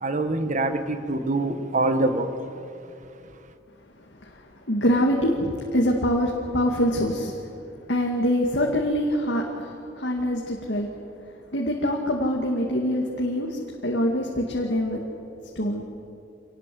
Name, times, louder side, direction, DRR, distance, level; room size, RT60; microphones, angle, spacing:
voice 1, 0.0-2.3, right 2 dB, 45° right, 1.6 m, -24 dB
voice 2, 4.7-7.4 7.9-10.9 11.5-15.0 15.6-15.8, equal, 70° left, 2.3 m, -24 dB
26.0 x 19.5 x 7.9 m
head